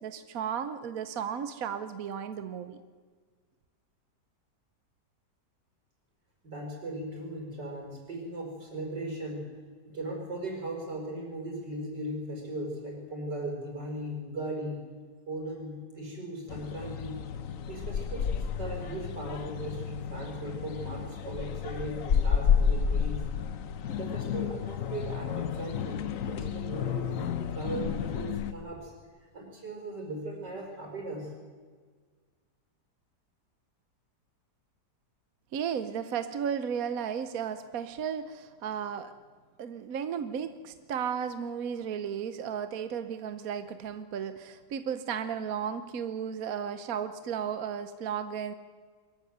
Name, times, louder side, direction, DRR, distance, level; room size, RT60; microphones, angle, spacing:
voice 1, 0.0-2.8 35.5-39.1 39.6-48.5, right 8 dB, 60° right, 11 dB, 1.3 m, -34 dB
voice 2, 6.4-9.5 9.8-14.9 15.3-17.2 17.7-23.3 24.0-28.9 29.3-31.3, right 1 dB, 90° right, 0 dB, 5.7 m, -38 dB
sound 1, 16.5-28.5, left 7 dB, 60° left, 1.2 m, -31 dB
22.5 x 14.0 x 9.3 m, 1.5 s
omnidirectional pair, 1.8 m